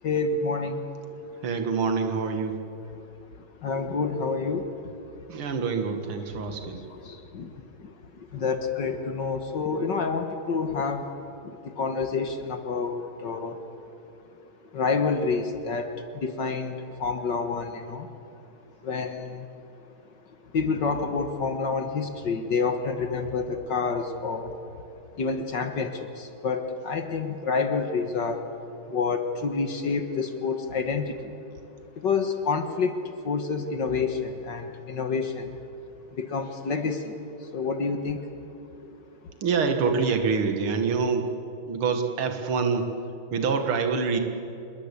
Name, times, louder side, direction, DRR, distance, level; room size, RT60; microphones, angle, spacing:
voice 1, 0.0-0.8 3.6-5.1 6.9-11.1 11.4-13.6 14.7-18.1 18.8-19.5 20.5-24.6 25.2-28.4 28.9-31.3 32.0-33.0 33.2-35.6 36.1-38.3, left 4 dB, 60° left, 7 dB, 2.0 m, -28 dB
voice 2, 1.4-2.6 5.3-6.8 39.4-41.3 41.7-42.9 43.3-44.2, right 5 dB, 75° right, 5 dB, 2.6 m, -26 dB
27.5 x 21.5 x 8.5 m, 2.9 s
omnidirectional pair, 2.3 m